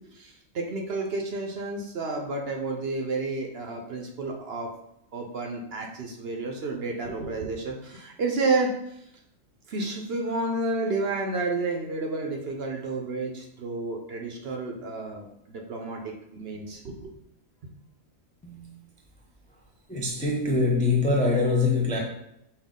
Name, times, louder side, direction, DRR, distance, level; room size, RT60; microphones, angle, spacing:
voice 1, 0.1-4.7 5.1-9.0 9.7-17.1 17.6-17.7, right 3 dB, 60° right, 1 dB, 0.8 m, -31 dB
voice 2, 18.4-18.8 19.9-22.0, left 3 dB, 10° left, -2 dB, 0.3 m, -24 dB
5.7 x 2.4 x 3.6 m, 0.78 s
omnidirectional pair, 1.4 m